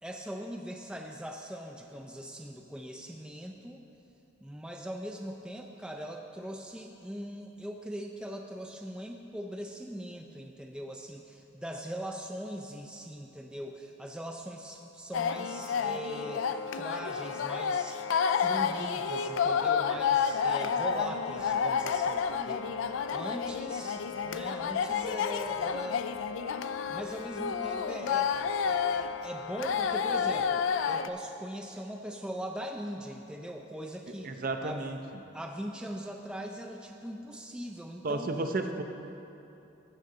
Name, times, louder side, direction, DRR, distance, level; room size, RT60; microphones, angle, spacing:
voice 1, 0.0-3.9 4.4-16.5 16.7-18.0 18.3-22.7 23.1-26.1 26.9-34.3 34.6-34.8 35.3-38.3, equal, 5° right, 2 dB, 0.4 m, -41 dB
sound 1, 15.1-31.1, left 6 dB, 80° left, 0.4 m, -30 dB
voice 2, 34.2-35.0 38.0-38.8, right 2 dB, 45° right, 6 dB, 0.6 m, -32 dB
15.5 x 6.4 x 3.9 m, 2.8 s
head